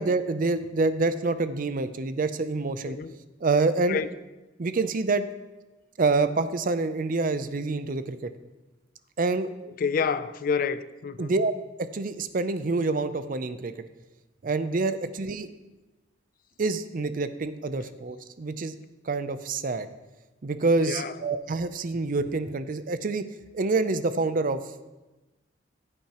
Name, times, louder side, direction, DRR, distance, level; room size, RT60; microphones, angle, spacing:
voice 1, 0.0-3.0 3.4-4.0 4.6-5.3 6.0-8.3 9.2-9.5 11.2-11.5 11.9-13.8 14.4-15.5 16.6-18.7 19.1-19.9 20.4-23.3 23.5-24.6, right 3 dB, 50° right, 12 dB, 0.5 m, -27 dB
voice 2, 9.8-11.3 20.8-21.2, left 6 dB, 50° left, 14 dB, 0.4 m, -28 dB
15.0 x 8.6 x 3.0 m, 1.1 s
head